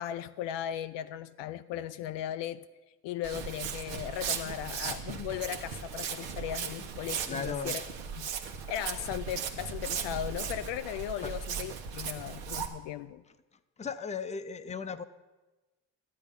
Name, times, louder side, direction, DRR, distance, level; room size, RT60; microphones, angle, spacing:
voice 1, 0.0-2.6 3.0-7.8 8.2-8.3 8.7-13.2, left 11 dB, 60° left, 0.5 m, -37 dB
Walk footsteps, 3.2-12.7, right 7 dB, 75° right, 1.2 m, -37 dB
voice 2, 7.3-7.8 11.2-11.4 12.0-12.3 12.6-12.7 13.8-15.0, left 5 dB, 15° left, 0.6 m, -37 dB
12.0 x 8.5 x 5.3 m
hypercardioid pair, 60°, 49 cm